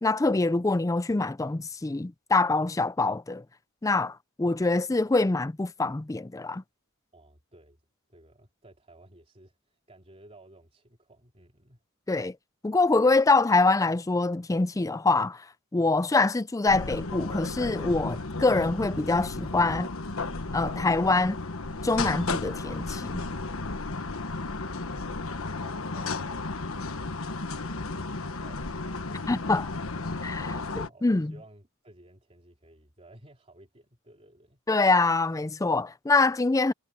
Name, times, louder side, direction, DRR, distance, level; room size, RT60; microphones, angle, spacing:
voice 1, 0.0-3.4 3.8-6.6 12.1-12.4 12.6-15.5 15.7-19.9 20.5-21.4 21.8-23.2 29.3-29.7 30.2-30.5 31.0-31.3 34.7-36.7, left 3 dB, 15° left, 0.4 m, -24 dB
voice 2, 7.1-7.8 8.1-11.8 27.6-29.8 30.5-34.6, right 1 dB, 30° right, 3.6 m, -56 dB
sound 1, 16.7-30.9, left 3 dB, 70° left, 1.3 m, -34 dB
head